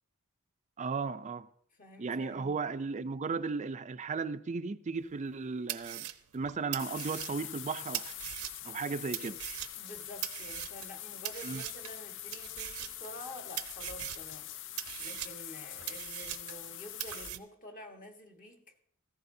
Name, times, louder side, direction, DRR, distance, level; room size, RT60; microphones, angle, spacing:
voice 1, 0.8-1.5 2.0-6.1 6.3-8.1 8.6-9.4 11.4-11.6, right 4 dB, 35° right, 0.4 m, -35 dB
voice 2, 1.8-2.5 9.8-18.7, equal, 40° left, 1.4 m, -49 dB
sound 1, 5.2-5.3 5.7-8.8 9.1-11.0 11.3-12.0 12.3-13.3 13.6-14.4 14.8-16.7 17.0-17.4, right 13 dB, 90° right, 0.7 m, -40 dB
sound 2, 6.8-17.3, left 12 dB, 60° left, 0.4 m, -44 dB
17.5 x 14.5 x 2.7 m
head